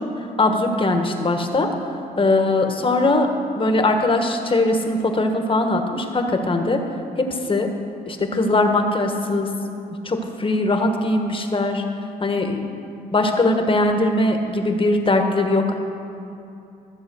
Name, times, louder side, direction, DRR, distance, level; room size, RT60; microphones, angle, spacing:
voice 1, 0.4-1.7 2.2-3.3 3.6-6.8 7.2-7.7 8.1-9.5 10.0-11.8 12.2-12.6 13.1-15.7, left 2 dB, 30° left, 4 dB, 1.4 m, -20 dB
14.5 x 7.4 x 6.2 m, 2.7 s
cardioid pair, 70°, 17 cm